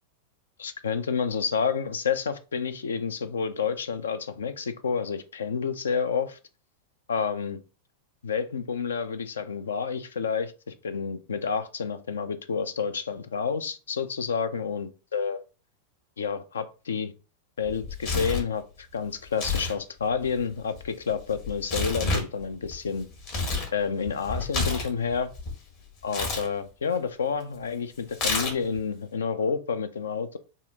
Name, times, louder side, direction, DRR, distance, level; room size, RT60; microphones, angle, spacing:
voice 1, 0.6-6.4 7.1-7.6 8.2-15.4 16.2-17.1 17.6-23.1 23.7-25.3 26.0-30.4, left 6 dB, 70° left, 0.4 m, -29 dB
Tearing, 17.7-18.5 19.3-19.8 20.0-23.7 24.1-25.6 26.1-26.5 28.1-28.8, left 3 dB, 45° left, 1.3 m, -30 dB
4.1 x 2.5 x 3.6 m
figure-of-eight pair, 90°, 0 cm